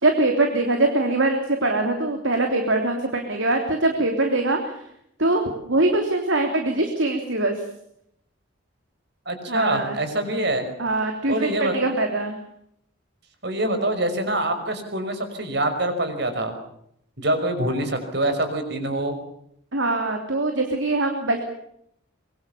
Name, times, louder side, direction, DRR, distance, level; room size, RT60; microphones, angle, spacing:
voice 1, 0.0-4.6 5.2-7.5 9.5-10.0 10.8-12.4 19.7-21.4, right 2 dB, 70° right, 4 dB, 3.3 m, -22 dB
voice 2, 9.3-10.7 11.3-12.0 13.4-16.5 17.2-19.2, right 1 dB, 55° right, 7 dB, 5.7 m, -25 dB
24.5 x 23.5 x 7.1 m, 0.74 s
head